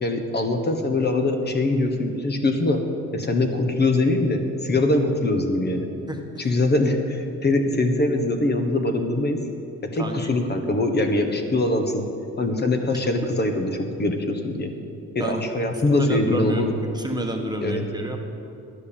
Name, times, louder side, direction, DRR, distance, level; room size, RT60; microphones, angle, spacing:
voice 1, 0.0-2.8 3.1-5.9 6.4-9.4 9.9-12.0 12.4-13.7 14.0-14.7 15.1-16.7 17.6-17.8, left 2 dB, 35° left, 4 dB, 1.3 m, -22 dB
voice 2, 6.1-6.5 10.0-10.3 15.2-16.6 16.9-18.2, right 1 dB, 15° right, 2 dB, 1.4 m, -30 dB
12.0 x 9.5 x 7.2 m, 2.7 s
cardioid pair, 90°, 30 cm